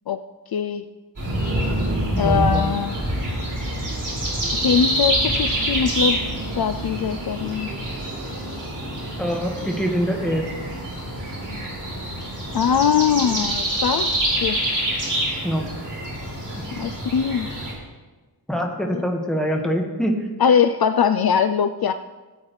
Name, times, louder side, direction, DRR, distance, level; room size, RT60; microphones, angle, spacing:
voice 1, 0.5-0.9 2.2-3.0 4.5-6.2 6.6-7.7 12.5-14.1 14.4-14.6 16.7-17.5 18.9-19.0 20.4-21.9, left 7 dB, 60° left, 9 dB, 0.5 m, -21 dB
sound 1, 1.2-17.7, right 1 dB, 45° right, 4.4 m, -26 dB
voice 2, 2.1-2.7 9.2-10.5 15.4-15.6 16.5-16.7 18.5-20.3, equal, ahead, 0 dB, 1.6 m, -24 dB
17.0 x 8.9 x 3.2 m, 1.2 s
wide cardioid pair, 105°, 42 cm